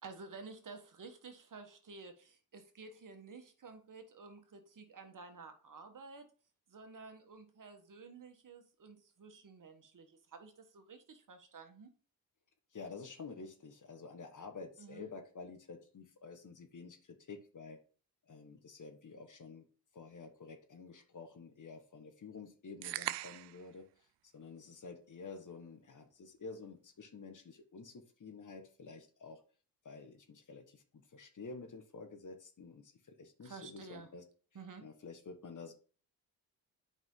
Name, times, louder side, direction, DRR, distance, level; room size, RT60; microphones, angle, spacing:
voice 1, 0.0-6.3 6.7-11.9 14.8-15.1 33.4-34.1 34.5-34.8, right 4 dB, 50° right, 1.5 m, -52 dB
voice 2, 12.7-17.8 18.3-19.6 19.9-29.4 29.8-34.2 34.8-35.7, left 4 dB, 45° left, 1.5 m, -50 dB
sound 1, 22.8-23.6, right 15 dB, 75° right, 0.5 m, -39 dB
8.0 x 5.2 x 3.9 m
cardioid pair, 65°, 42 cm